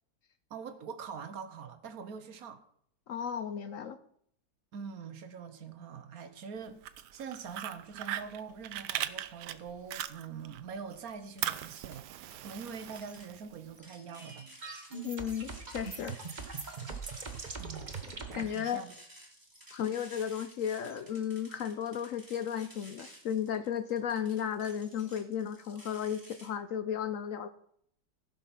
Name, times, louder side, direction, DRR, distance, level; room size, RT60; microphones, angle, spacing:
voice 1, 0.5-2.6 4.7-6.8 7.1-14.5 17.6-18.0 18.2-18.9, right 6 dB, 60° right, 1.3 m, -44 dB
voice 2, 3.1-4.0 15.0-16.2 18.3-18.8 19.7-27.5, left 8 dB, 65° left, 0.8 m, -34 dB
Fire, 6.7-10.6 10.9-13.7, right 12 dB, 75° right, 1.2 m, -39 dB
sound 1, 10.9-12.0 12.3-26.5, equal, 10° right, 2.7 m, -54 dB
sound 2, 14.1-18.5, right 4 dB, 30° right, 1.1 m, -41 dB
15.5 x 5.7 x 5.8 m
omnidirectional pair, 1.8 m